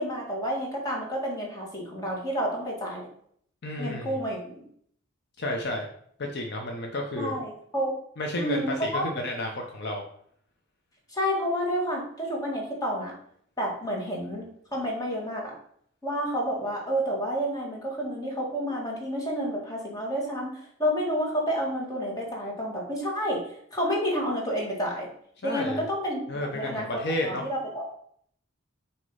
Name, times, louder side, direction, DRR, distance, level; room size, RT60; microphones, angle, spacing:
voice 1, 0.0-3.1 3.8-4.7 7.2-7.9 8.4-9.1 11.1-13.1 13.6-15.5 16.0-23.4 23.7-25.1 25.4-26.2 26.5-27.9, equal, 20° left, -3 dB, 1.7 m, -30 dB
voice 2, 3.6-4.2 5.4-5.9 6.2-7.4 8.2-10.0 25.4-25.8 26.3-27.5, left 1 dB, 55° left, 2 dB, 0.7 m, -31 dB
6.3 x 3.0 x 5.4 m, 0.65 s
head